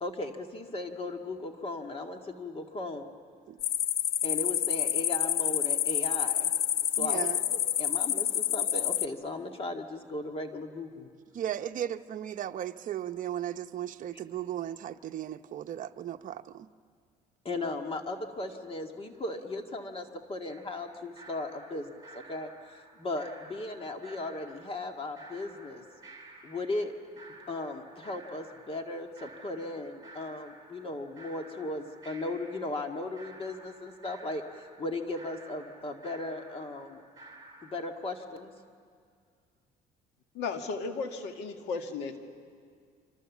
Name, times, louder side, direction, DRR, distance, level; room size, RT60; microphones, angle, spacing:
voice 1, 0.0-3.2 4.2-6.5 6.9-11.1 17.5-25.8 26.4-26.9 27.5-37.0 37.6-38.5, left 2 dB, 35° left, 4 dB, 1.9 m, -37 dB
sound 1, 3.6-9.1, left 11 dB, 70° left, 0.7 m, -28 dB
voice 2, 7.0-7.4 11.3-16.7, right 11 dB, 50° right, 7 dB, 0.8 m, -36 dB
sound 2, 20.5-38.0, right 2 dB, 20° right, 4.9 m, -53 dB
voice 3, 40.3-42.2, left 4 dB, 90° left, 5 dB, 2.0 m, -35 dB
27.0 x 25.5 x 7.3 m, 2.1 s
cardioid pair, 110°, 17 cm